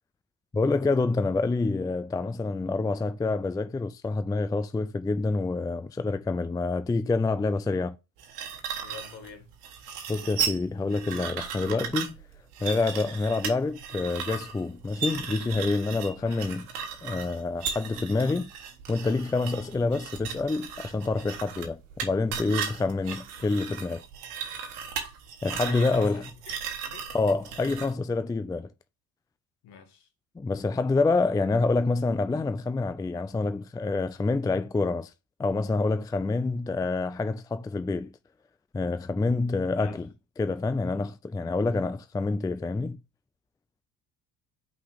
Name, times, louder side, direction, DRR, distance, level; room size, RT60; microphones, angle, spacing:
voice 1, 0.5-7.9 10.1-12.2 12.6-16.7 17.0-18.5 18.9-24.0 25.4-26.2 27.1-28.7 30.4-35.1 35.4-38.1 38.7-40.1 40.4-43.0, left 3 dB, 10° left, 0.4 m, -27 dB
sound 1, 8.2-27.9, right 7 dB, 85° right, 1.4 m, -36 dB
voice 2, 8.8-9.5 16.2-16.6 25.6-26.2 26.8-27.1 29.6-30.1 39.6-40.0, left 7 dB, 60° left, 1.7 m, -45 dB
5.6 x 4.2 x 5.0 m
hypercardioid pair, 60°, 45 cm